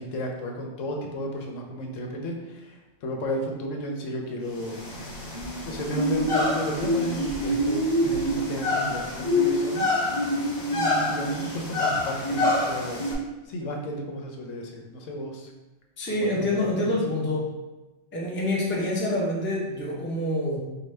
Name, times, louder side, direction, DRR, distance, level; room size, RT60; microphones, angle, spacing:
voice 1, 0.0-4.8 5.6-10.0 10.2-10.4 10.7-13.0 13.4-15.5 16.1-17.0, equal, 80° left, 1 dB, 1.0 m, -33 dB
sound 1, 4.6-13.1, left 1 dB, 55° left, 1.3 m, -26 dB
voice 2, 16.0-17.5 18.1-20.6, left 1 dB, 15° left, -4 dB, 0.5 m, -26 dB
4.7 x 2.2 x 3.2 m, 1.1 s
omnidirectional pair, 1.3 m